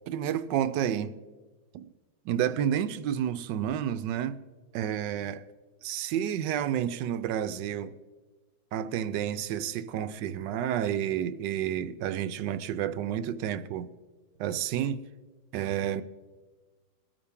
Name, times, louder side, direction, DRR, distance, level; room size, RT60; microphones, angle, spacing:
voice 1, 0.1-1.2 1.7-1.9 2.3-4.4 4.7-5.4 5.8-7.9 8.7-13.9 14.4-15.0 15.5-16.0, right 10 dB, 75° right, 1.2 m, -30 dB
21.0 x 8.8 x 3.6 m
omnidirectional pair, 2.0 m